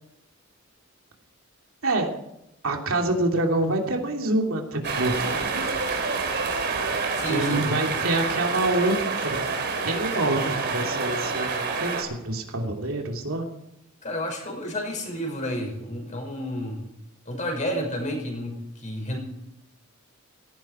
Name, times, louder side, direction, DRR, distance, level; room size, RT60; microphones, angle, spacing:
voice 1, 1.8-2.2 2.6-5.7 7.3-8.9 9.2-9.4 9.8-13.4, right 2 dB, 70° right, 2 dB, 3.0 m, -26 dB
sound 1, 4.8-12.0, right 4 dB, 50° right, 3.6 m, -27 dB
voice 2, 7.2-7.6 14.0-16.9 17.3-19.2, equal, 35° left, 2 dB, 5.7 m, -31 dB
18.0 x 15.5 x 4.5 m, 0.83 s
head